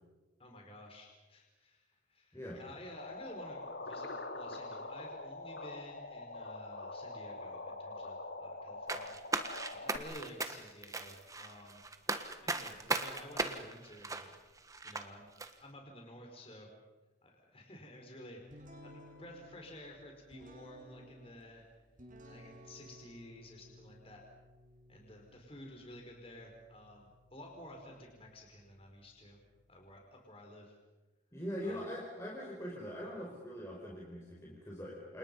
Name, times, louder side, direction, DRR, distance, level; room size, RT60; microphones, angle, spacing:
voice 1, 0.4-9.2 9.7-11.8 12.4-14.3 14.8-15.3 15.6-16.7 17.2-21.7 22.3-24.2 24.9-29.4 29.7-30.8 31.6-31.9, left 1 dB, 30° left, 1 dB, 5.0 m, -52 dB
sound 1, 3.0-10.0, left 2 dB, 60° left, 2.5 m, -44 dB
sound 2, 8.9-15.1 15.4-15.5, right 3 dB, 15° right, 1.4 m, -37 dB
sound 3, 18.5-30.0, equal, 45° right, 6.5 m, -58 dB
voice 2, 31.3-35.2, equal, 15° left, -4 dB, 4.9 m, -42 dB
29.5 x 28.0 x 5.6 m, 1.1 s
head